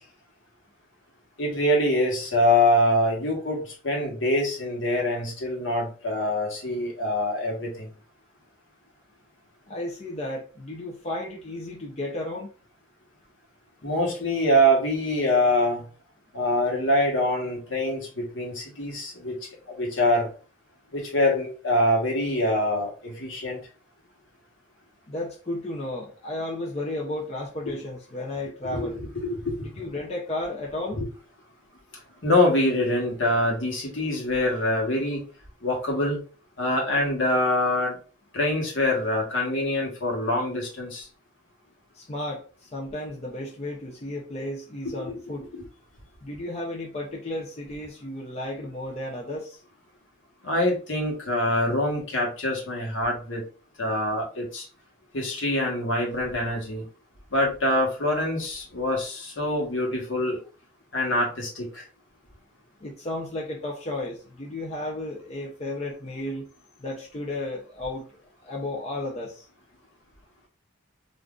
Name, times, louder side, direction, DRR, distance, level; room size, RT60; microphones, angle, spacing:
voice 1, 1.4-7.9 13.8-15.8 16.3-19.4 19.7-20.3 20.9-23.6 27.7-27.8 28.6-29.7 31.0-31.1 32.2-35.2 35.6-36.2 36.6-38.0 38.3-41.1 45.1-45.2 45.5-45.6 50.4-53.4 53.8-54.7 55.1-56.8 57.3-60.4 60.9-61.8, left 1 dB, 70° left, 0 dB, 1.2 m, -25 dB
voice 2, 9.7-12.5 25.1-29.0 29.6-31.0 41.9-45.5 46.2-49.6 62.8-66.5 66.8-68.1 68.4-69.5, left 1 dB, 30° left, -3 dB, 0.6 m, -33 dB
3.6 x 2.5 x 2.4 m, 0.36 s
head